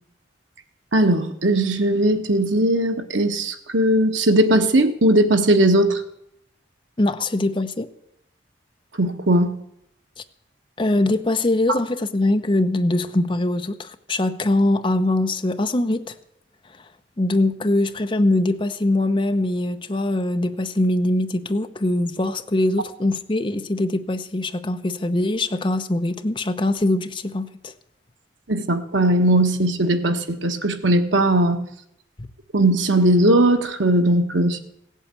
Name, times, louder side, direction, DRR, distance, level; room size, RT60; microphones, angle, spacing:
voice 1, 0.9-6.0 9.0-9.5 11.7-11.8 28.5-31.6 32.5-34.6, right 1 dB, 85° right, 6 dB, 1.4 m, -18 dB
voice 2, 7.0-7.9 10.8-16.1 17.2-27.7, left 1 dB, 25° left, 9 dB, 0.7 m, -22 dB
17.0 x 8.3 x 8.5 m, 0.77 s
head